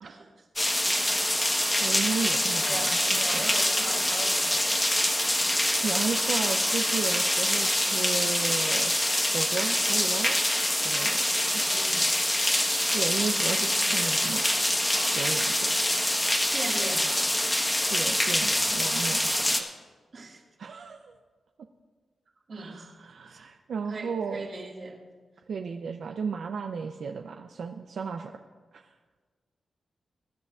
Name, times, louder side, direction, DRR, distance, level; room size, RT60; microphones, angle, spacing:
sound 1, 0.6-19.6, left 1 dB, 10° left, 1.1 m, -25 dB
voice 1, 1.8-3.5 5.8-10.4 10.8-11.2 11.5-11.8 12.9-14.4 15.1-15.7 16.0-16.2 17.9-19.5 20.6-21.1 22.5-24.5 25.5-28.3 28.7-28.9, right 5 dB, 75° right, 4 dB, 0.5 m, -34 dB
voice 2, 2.6-4.6 11.6-12.1 16.5-17.3 20.1-20.4 22.5-22.9 23.3-23.4 23.9-25.0, right 3 dB, 50° right, 0 dB, 1.8 m, -39 dB
21.5 x 10.5 x 2.4 m, 1.5 s
wide cardioid pair, 100°, 0 cm